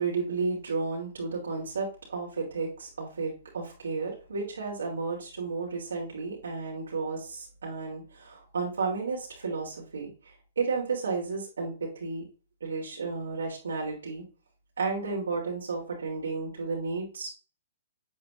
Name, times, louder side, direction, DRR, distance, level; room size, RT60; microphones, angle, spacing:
voice 1, 0.0-10.1 10.6-12.3 12.6-14.2 14.8-17.3, right 4 dB, 80° right, -2 dB, 3.0 m, -32 dB
8.5 x 7.6 x 2.5 m, 0.36 s
hypercardioid pair, 125°, 0 cm